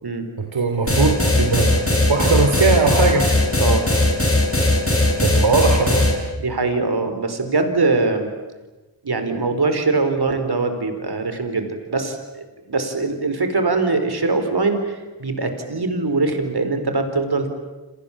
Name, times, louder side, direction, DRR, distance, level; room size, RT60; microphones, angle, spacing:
voice 1, 0.4-1.8 2.1-3.2 5.2-6.0, right 4 dB, 75° right, 3 dB, 3.2 m, -19 dB
sound 1, 0.9-6.1, left 2 dB, 30° left, 6.8 m, -18 dB
voice 2, 6.4-8.3 9.0-17.5, right 3 dB, 55° right, 7 dB, 4.7 m, -22 dB
29.5 x 26.5 x 7.5 m, 1.2 s
wide cardioid pair, 65°, 46 cm